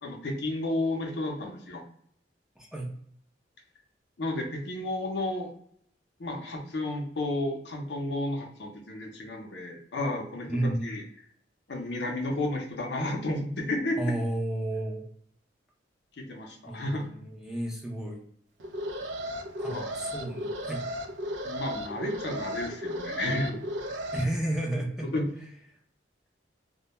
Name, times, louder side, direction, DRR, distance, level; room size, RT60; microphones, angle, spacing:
voice 1, 0.0-1.8 4.2-5.5 6.2-10.5 10.8-11.0 11.7-14.0 16.2-17.1 19.7-19.8 21.4-23.6 25.1-25.3, left 2 dB, 70° left, 1 dB, 0.6 m, -32 dB
voice 2, 2.6-2.9 10.5-11.0 14.0-15.0 16.7-18.2 19.6-20.8 24.1-25.1, right 1 dB, 5° right, -2 dB, 0.5 m, -32 dB
Alarm, 18.6-24.2, equal, 85° right, 0.4 m, -35 dB
2.1 x 2.1 x 2.9 m, 0.65 s
head